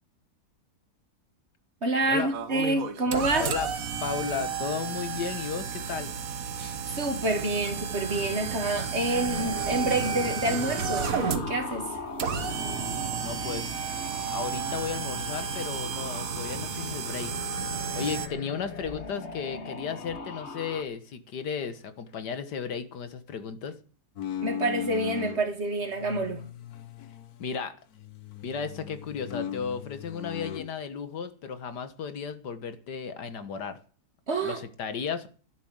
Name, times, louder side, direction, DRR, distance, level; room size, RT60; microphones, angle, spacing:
voice 1, 1.8-3.5 6.6-11.9 24.4-26.4 34.3-34.6, right 2 dB, 40° right, 2.3 m, -28 dB
sound 1, 2.3-18.3, right 7 dB, 60° right, 1.6 m, -32 dB
voice 2, 4.0-6.1 13.2-13.7 14.3-17.3 18.0-23.7 27.4-27.7 28.4-33.8 34.4-35.3, left 6 dB, 85° left, 1.9 m, -34 dB
sound 2, 9.1-20.8, left 3 dB, 45° left, 1.7 m, -39 dB
sound 3, 24.2-25.4 25.9-27.7 28.0-30.7, left 9 dB, 65° left, 1.4 m, -38 dB
11.5 x 11.0 x 7.9 m
omnidirectional pair, 1.7 m